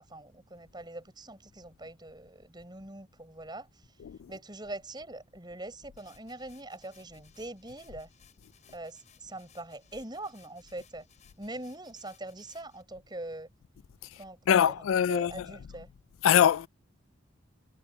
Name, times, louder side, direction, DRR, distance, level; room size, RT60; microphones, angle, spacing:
voice 1, 0.0-3.7 4.3-8.1 8.7-11.1 11.4-13.5 14.2-14.7 15.1-15.9, right 2 dB, 20° right, 5.7 m, -43 dB
sound 1, 6.0-12.8, left 8 dB, 35° left, 6.8 m, -63 dB
voice 2, 14.5-15.5 16.2-16.7, left 9 dB, 90° left, 0.3 m, -23 dB
head